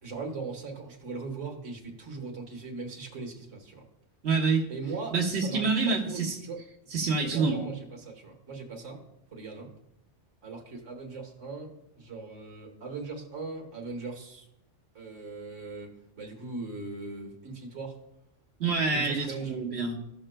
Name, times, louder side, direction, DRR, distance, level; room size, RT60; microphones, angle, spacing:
voice 1, 0.0-3.8 4.7-6.6 7.2-9.0 9.3-9.7 10.4-14.5 14.9-18.0 18.9-19.6, right 4 dB, 90° right, 1 dB, 1.7 m, -39 dB
voice 2, 4.2-4.6 5.1-6.3 6.9-7.7 18.6-19.9, right 4 dB, 65° right, -2 dB, 1.5 m, -27 dB
15.0 x 6.3 x 2.2 m, 0.82 s
omnidirectional pair, 1.2 m